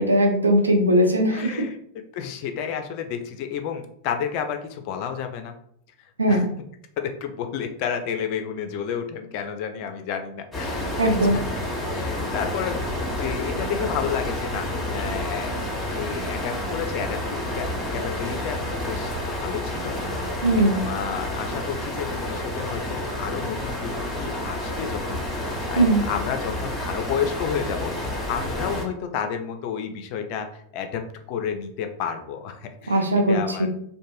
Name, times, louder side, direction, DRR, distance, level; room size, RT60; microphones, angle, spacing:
voice 1, 0.0-1.7 6.2-6.5 11.0-11.4 20.4-20.8 25.8-26.0 32.9-33.7, right 1 dB, 80° right, 2 dB, 0.5 m, -19 dB
voice 2, 1.3-1.7 2.1-5.5 6.3-6.4 7.0-11.4 11.9-12.8 13.2-15.6 15.8-18.6 18.9-33.7, left 7 dB, 45° left, 6 dB, 0.4 m, -31 dB
sound 1, 10.5-28.8, left 1 dB, 5° left, 0.8 m, -29 dB
2.5 x 2.1 x 3.1 m, 0.69 s
figure-of-eight pair, 90°, 0 cm